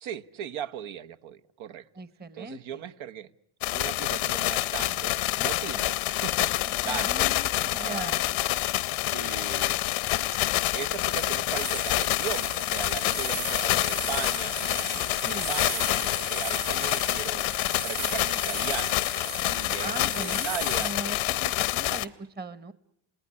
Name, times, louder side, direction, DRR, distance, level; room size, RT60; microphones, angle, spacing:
voice 1, 0.0-1.9 2.3-3.3 3.7-7.4 7.7-8.2 9.1-9.8 10.3-10.4 10.7-17.4 17.8-19.0 19.4-20.9, right 10 dB, 70° right, 1.1 m, -38 dB
voice 2, 1.9-2.9 6.8-8.2 15.2-15.5 19.8-22.7, right 2 dB, 20° right, 1.1 m, -39 dB
sound 1, 3.6-22.1, left 16 dB, 85° left, 0.9 m, -27 dB
sound 2, 11.1-20.9, right 7 dB, 40° right, 1.0 m, -38 dB
28.0 x 19.0 x 9.8 m
supercardioid pair, 75°, 49 cm